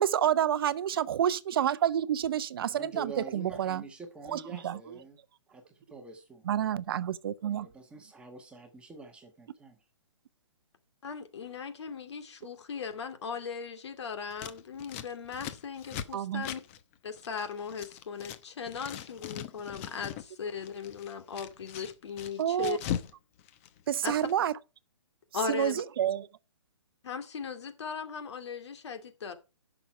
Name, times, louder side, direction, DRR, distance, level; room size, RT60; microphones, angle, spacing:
voice 1, 0.0-3.8 4.3-5.0 6.4-7.7 16.1-16.5 22.4-22.8 23.9-24.6 25.5-26.3, right 10 dB, 50° right, 0.7 m, -29 dB
voice 2, 2.7-5.2 5.5-6.5 7.5-9.8, right 3 dB, 5° right, 1.3 m, -46 dB
voice 3, 11.0-16.6 17.0-22.8 24.0-24.2 25.3-25.8 27.0-29.3, left 6 dB, 60° left, 2.4 m, -38 dB
Scissors, 14.3-18.4 18.7-20.3 20.6-23.1 23.4-24.3, left 10 dB, 25° left, 0.8 m, -40 dB
11.0 x 6.2 x 5.4 m
hypercardioid pair, 155°, 16 cm